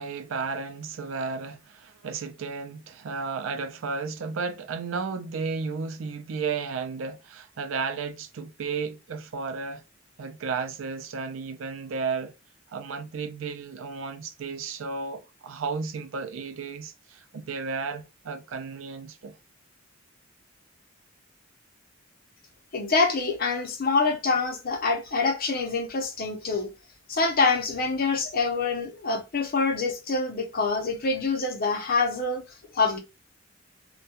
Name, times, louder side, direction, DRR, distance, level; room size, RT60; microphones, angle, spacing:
voice 1, 0.0-9.8 10.2-12.3 12.7-19.4, right 4 dB, 80° right, 0.4 m, -33 dB
voice 2, 22.7-26.7 27.1-32.4 32.7-33.0, left 4 dB, 50° left, 0.6 m, -25 dB
2.2 x 2.2 x 2.8 m
head